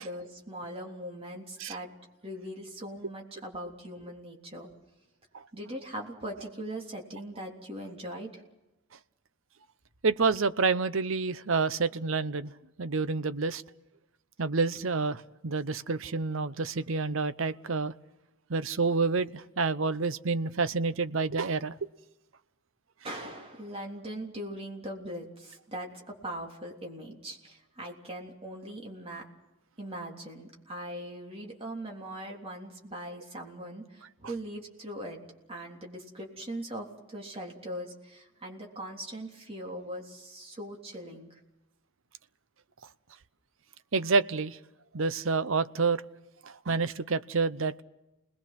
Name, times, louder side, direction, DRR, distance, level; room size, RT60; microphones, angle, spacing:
voice 1, 0.0-1.9 2.2-4.7 5.5-8.4 23.0-29.2 29.8-35.2 35.5-41.4, right 1 dB, 25° right, 3.4 m, -40 dB
voice 2, 10.0-12.5 12.8-13.6 14.4-17.9 18.5-21.7 43.9-44.6 44.9-46.0 46.4-47.8, right 4 dB, 65° right, 0.8 m, -28 dB
30.0 x 20.0 x 6.0 m
head